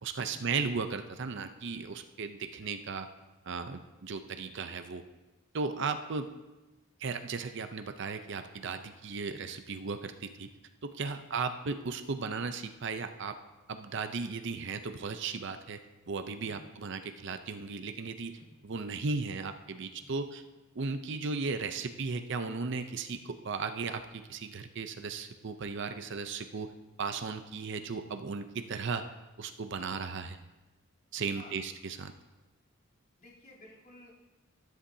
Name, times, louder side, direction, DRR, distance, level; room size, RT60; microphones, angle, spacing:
voice 1, 0.0-3.1 3.5-5.0 5.5-6.3 7.0-10.5 10.8-13.4 13.7-15.8 16.1-18.4 18.6-20.4 20.7-26.7 27.0-29.0 29.4-30.4 31.1-32.1, right 4 dB, 60° right, 8 dB, 0.6 m, -36 dB
voice 2, 20.0-20.3 31.3-31.5 33.2-34.1, left 1 dB, 45° left, -7 dB, 3.1 m, -54 dB
13.0 x 9.9 x 2.7 m, 1.1 s
head